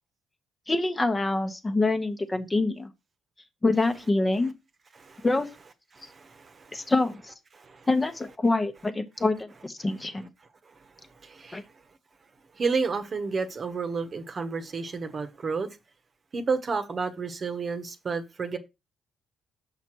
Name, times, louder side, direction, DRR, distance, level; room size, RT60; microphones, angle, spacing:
voice 1, 0.7-2.9 3.6-4.5 5.2-5.5 6.7-7.3 7.9-10.3 11.5-11.6, left 2 dB, 20° left, 1.0 m, -26 dB
voice 2, 4.9-5.3 5.9-6.9 7.5-7.9 11.2-11.7 12.5-15.7 16.3-18.6, right 4 dB, 40° right, 1.1 m, -31 dB
5.9 x 5.6 x 4.6 m
cardioid pair, 90°, 0 cm